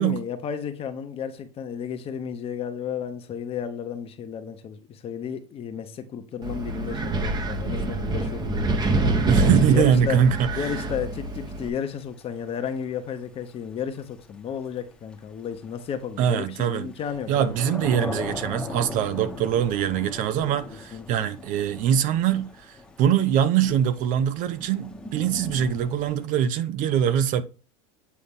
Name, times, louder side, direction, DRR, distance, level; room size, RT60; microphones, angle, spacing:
voice 1, 0.0-8.9 9.7-10.2 10.5-17.6 20.9-21.2, left 8 dB, 35° left, 1.1 m, -33 dB
Wind, 6.4-11.7, right 2 dB, 25° right, 1.0 m, -26 dB
voice 2, 9.2-10.6 16.2-16.9 17.3-27.4, right 9 dB, 50° right, 0.7 m, -23 dB
Thunder / Rain, 10.8-26.3, left 3 dB, 5° left, 1.1 m, -40 dB
8.4 x 3.8 x 3.7 m
supercardioid pair, 125°, 17 cm